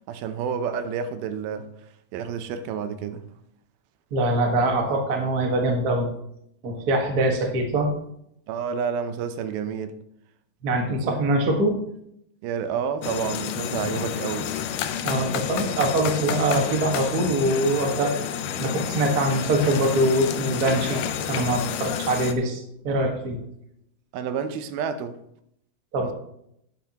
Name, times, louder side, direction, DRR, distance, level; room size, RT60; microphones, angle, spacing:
voice 1, 0.1-1.7 2.1-3.2 8.5-10.0 11.0-11.2 12.4-14.5 24.1-25.2 26.0-26.1, right 7 dB, 85° right, 2.6 m, -29 dB
voice 2, 4.1-6.1 6.6-7.9 10.6-11.7 15.0-18.1 18.6-23.4 25.9-26.1, right 1 dB, 65° right, 0.9 m, -23 dB
sound 1, 13.0-22.3, left 9 dB, 75° left, 2.1 m, -30 dB
11.0 x 8.9 x 2.9 m
omnidirectional pair, 4.2 m